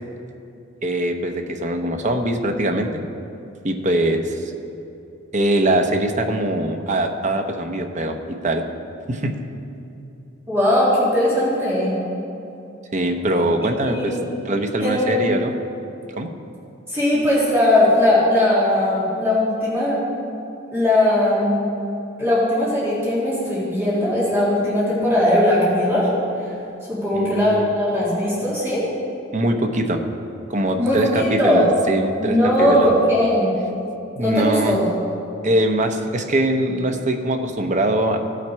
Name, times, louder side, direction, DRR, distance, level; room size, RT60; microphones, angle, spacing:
voice 1, 0.8-3.0 3.6-4.5 5.3-8.6 9.1-9.3 12.9-14.2 14.4-15.5 16.2-16.3 27.1-27.7 29.3-30.0 30.5-32.9 34.2-34.8 35.4-38.2, right 1 dB, 40° right, 5 dB, 0.8 m, -22 dB
voice 2, 10.5-12.0 13.6-14.2 14.8-15.2 16.9-20.0 20.7-21.7 22.2-26.1 26.9-28.8 30.8-31.7 32.2-33.5 34.2-34.8, left 1 dB, 15° right, -9 dB, 2.2 m, -19 dB
16.0 x 5.9 x 4.5 m, 2.7 s
head